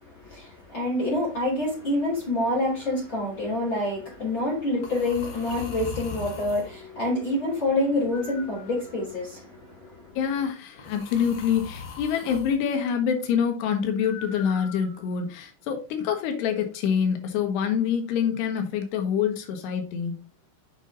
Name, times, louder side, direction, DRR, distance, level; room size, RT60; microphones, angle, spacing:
voice 1, 0.0-10.0, left 1 dB, 30° left, 4.0 m, -27 dB
sound 1, 2.8-3.1 4.8-6.7 8.1-9.2 10.8-12.6 14.0-15.2, left 5 dB, 60° left, 1.3 m, -40 dB
voice 2, 10.2-20.2, left 7 dB, 90° left, 3.5 m, -26 dB
8.5 x 5.6 x 3.8 m
omnidirectional pair, 4.6 m